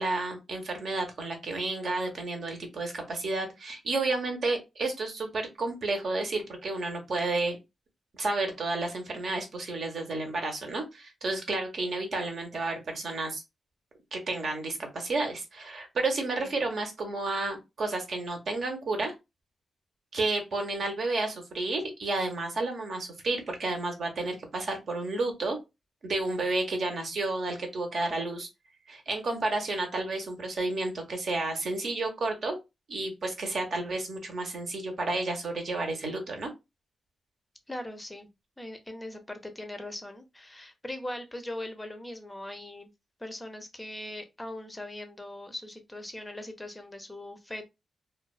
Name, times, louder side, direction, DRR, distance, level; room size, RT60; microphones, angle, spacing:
voice 1, 0.0-7.6 8.1-13.4 14.1-19.1 20.1-25.6 26.0-28.5 28.9-32.6 32.9-36.5, right 2 dB, 60° right, 0.8 m, -31 dB
voice 2, 37.7-38.3 38.6-42.9 43.2-47.7, left 1 dB, 10° left, 0.5 m, -40 dB
2.3 x 2.2 x 2.3 m
cardioid pair, 95°, 0 cm